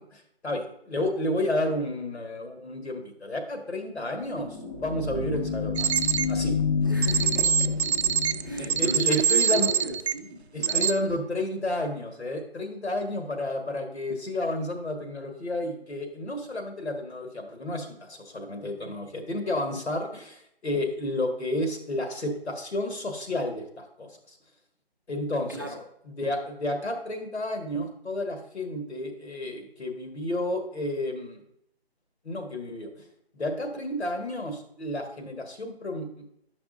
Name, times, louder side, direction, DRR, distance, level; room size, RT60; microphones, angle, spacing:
voice 1, 0.1-5.9 6.3-6.6 8.6-9.7 10.5-24.4 25.1-25.6 26.1-31.4 32.2-32.9 33.3-36.1, left 1 dB, 90° left, 5 dB, 1.6 m, -31 dB
sound 1, 4.1-9.6, left 5 dB, 25° left, 0.6 m, -29 dB
sound 2, 5.8-6.3 7.0-10.1 10.6-10.9, right 7 dB, 85° right, 0.5 m, -24 dB
voice 2, 6.8-7.7 8.4-11.1 25.5-25.8, right 4 dB, 20° right, 0 dB, 0.5 m, -35 dB
9.6 x 5.9 x 2.6 m, 0.74 s
figure-of-eight pair, 160°, 32 cm